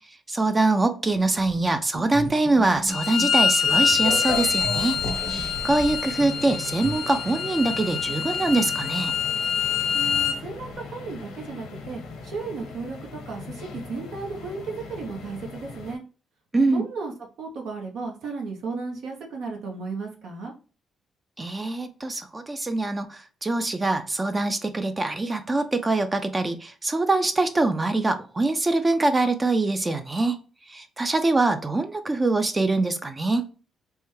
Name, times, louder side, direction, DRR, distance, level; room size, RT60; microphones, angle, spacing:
voice 1, 0.3-5.0 5.3-9.2 16.5-16.8 21.4-30.4 30.7-33.4, right 2 dB, 25° right, 0.4 m, -24 dB
sound 1, 1.9-3.4 4.6-6.9, right 2 dB, 45° right, 1.1 m, -36 dB
Bowed string instrument, 2.9-10.4, left 6 dB, 60° left, 0.5 m, -25 dB
sound 2, 3.6-16.0, left 4 dB, 85° left, 0.8 m, -37 dB
voice 2, 9.9-16.0 16.6-17.1 17.4-20.5, right 4 dB, 80° right, 0.8 m, -34 dB
3.3 x 2.1 x 3.0 m
cardioid pair, 90°, 0 cm